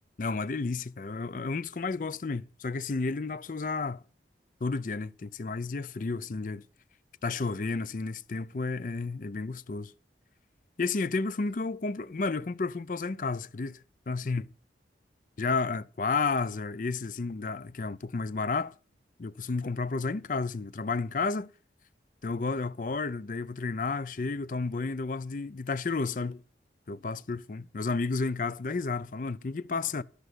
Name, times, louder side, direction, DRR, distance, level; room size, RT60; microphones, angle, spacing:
voice 1, 0.2-4.0 4.6-6.6 7.2-9.9 10.8-14.5 15.4-18.7 19.2-21.5 22.2-26.4 26.9-30.0, left 4 dB, 45° left, 0.5 m, -32 dB
13.0 x 6.7 x 6.2 m
head